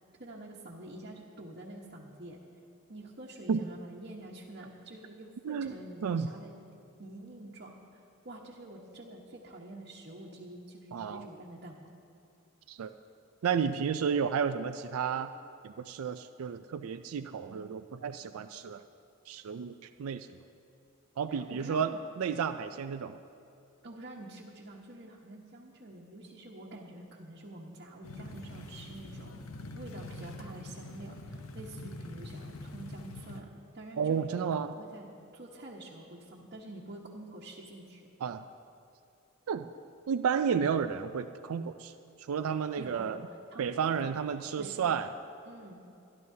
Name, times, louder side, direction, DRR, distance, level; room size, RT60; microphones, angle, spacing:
voice 1, 0.2-2.4 2.9-6.6 7.0-12.0 21.3-22.0 23.8-33.5 33.7-38.1 42.8-44.2 44.6-45.1 45.4-45.8, right 1 dB, 50° right, -5 dB, 1.2 m, -47 dB
voice 2, 10.9-11.2 12.7-12.9 13.4-15.3 15.6-18.8 19.3-20.3 21.2-21.9 22.2-23.2 34.0-34.7 38.2-38.4 39.5-39.7 40.1-41.9 42.3-43.2 43.6-45.1, right 6 dB, 85° right, 9 dB, 0.4 m, -32 dB
sound 1, 28.0-33.4, left 2 dB, 80° left, 0.8 m, -44 dB
25.0 x 11.0 x 2.8 m, 2.7 s
head